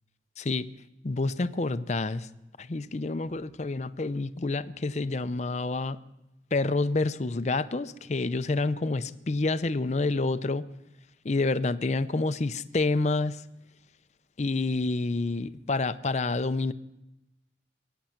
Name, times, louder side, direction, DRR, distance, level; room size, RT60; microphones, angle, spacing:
voice 1, 1.0-2.3 2.6-6.0 6.5-10.7 11.2-13.4 14.4-16.7, left 3 dB, 35° left, 13 dB, 0.5 m, -28 dB
22.0 x 9.1 x 5.8 m, 0.94 s
head